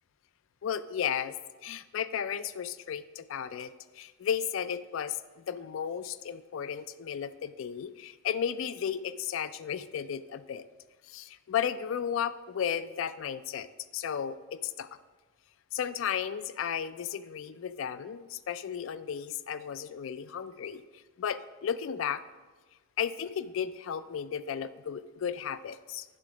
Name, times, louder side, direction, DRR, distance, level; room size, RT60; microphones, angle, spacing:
voice 1, 0.6-10.7 11.1-14.9 15.7-20.8 21.2-22.2 23.0-26.0, left 8 dB, 70° left, 14 dB, 0.3 m, -34 dB
9.8 x 3.8 x 6.0 m, 1.3 s
head